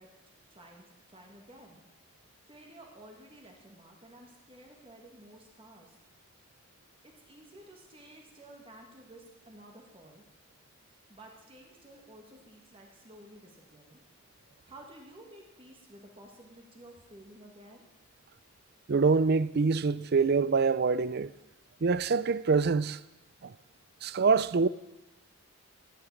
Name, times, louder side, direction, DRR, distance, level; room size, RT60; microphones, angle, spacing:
voice 1, 0.0-1.8 2.5-6.0 7.0-10.2 11.1-14.0 14.6-17.9, right 1 dB, 25° right, 2.1 m, -53 dB
voice 2, 18.9-21.3 21.8-23.0 23.4-23.5 24.0-24.7, right 4 dB, 50° right, 0.5 m, -25 dB
14.0 x 8.1 x 9.8 m
head